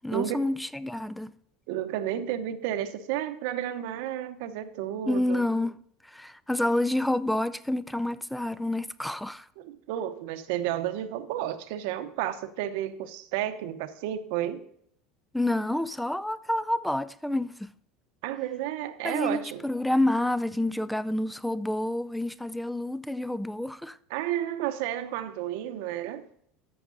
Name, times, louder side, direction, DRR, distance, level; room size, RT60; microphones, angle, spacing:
voice 1, 0.0-1.3 5.1-5.8 6.1-9.5 15.3-17.7 19.0-24.0, left 1 dB, 5° left, 0.4 m, -28 dB
voice 2, 1.7-5.4 9.6-14.7 18.2-19.6 24.1-26.2, right 11 dB, 75° right, 0.9 m, -32 dB
13.5 x 5.9 x 3.9 m
supercardioid pair, 130°, 0 cm